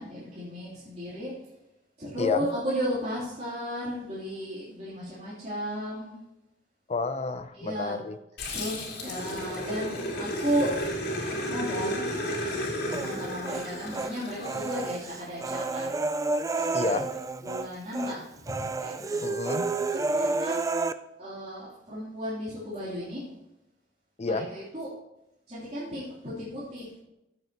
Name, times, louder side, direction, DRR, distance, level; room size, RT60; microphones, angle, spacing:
voice 1, 0.0-1.3 2.0-6.1 7.5-7.9 8.5-10.7 11.4-12.3 12.8-15.9 16.5-17.0 17.4-19.2 19.9-20.6 21.2-23.2 24.2-24.9 25.5-27.0, equal, 40° right, -10 dB, 3.3 m, -34 dB
voice 2, 6.9-8.2 16.7-17.1 19.2-19.7 24.2-24.5, left 3 dB, 35° left, 11 dB, 0.6 m, -30 dB
Growling, 8.4-15.1, equal, 60° left, 2.8 m, -33 dB
Human voice, 12.9-14.1 14.4-17.7 17.9-18.2 18.5-20.9, right 3 dB, 20° right, 0.3 m, -30 dB
14.5 x 7.9 x 3.0 m, 0.89 s
head